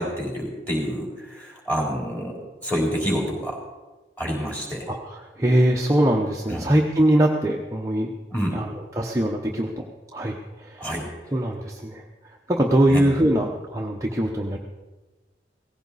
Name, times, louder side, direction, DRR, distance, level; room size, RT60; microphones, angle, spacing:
voice 1, 0.0-3.6 4.2-4.9 6.5-6.7 8.3-8.6 10.8-11.3 12.9-13.1, equal, 10° left, -1 dB, 3.6 m, -28 dB
voice 2, 5.4-8.1 8.5-8.7 9.0-9.8 10.1-10.8 11.3-12.0 12.5-14.6, right 1 dB, 15° right, -1 dB, 0.9 m, -22 dB
17.5 x 15.5 x 4.1 m, 1.2 s
head